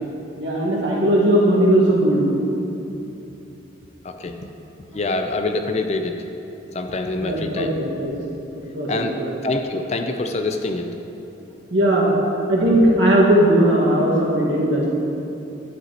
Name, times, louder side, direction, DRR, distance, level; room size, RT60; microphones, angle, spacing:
voice 1, 0.4-2.2 4.9-5.0 7.2-8.1 8.7-8.9 9.2-9.3 11.7-12.1 12.5-14.9, right 1 dB, 70° right, -4 dB, 1.6 m, -18 dB
voice 2, 4.0-4.4 4.9-6.1 6.7-7.7 8.9-10.9 12.2-12.4, left 2 dB, 35° left, 6 dB, 0.4 m, -25 dB
11.0 x 7.7 x 2.9 m, 2.9 s
head